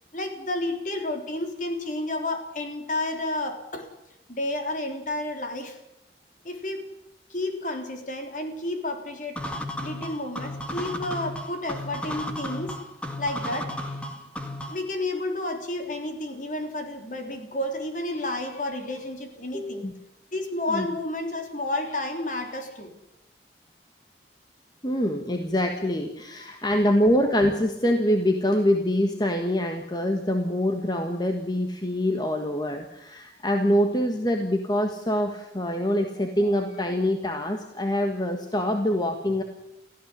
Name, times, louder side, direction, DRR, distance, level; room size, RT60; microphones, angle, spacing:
voice 1, 0.1-3.9 4.3-5.8 6.4-6.9 7.3-9.4 9.8-12.8 13.2-14.0 14.7-19.9 20.3-22.9 26.5-26.6, left 1 dB, 45° left, 4 dB, 3.5 m, -31 dB
sound 1, 9.4-14.9, left 1 dB, 5° left, 2.1 m, -34 dB
voice 2, 19.5-19.9 20.7-20.9 24.8-39.4, equal, 25° left, 4 dB, 1.5 m, -25 dB
18.0 x 15.0 x 9.8 m, 0.86 s
head